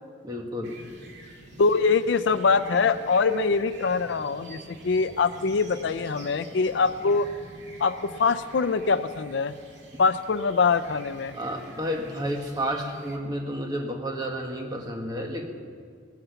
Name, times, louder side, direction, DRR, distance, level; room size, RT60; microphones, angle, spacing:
voice 1, 0.2-0.8 11.3-15.5, equal, 20° right, 2 dB, 1.4 m, -31 dB
sound 1, 0.6-13.2, right 1 dB, 65° right, 2.0 m, -47 dB
voice 2, 1.6-7.3 7.8-9.5 10.0-11.3, left 4 dB, 65° left, 13 dB, 0.4 m, -23 dB
18.5 x 9.4 x 7.0 m, 2.2 s
head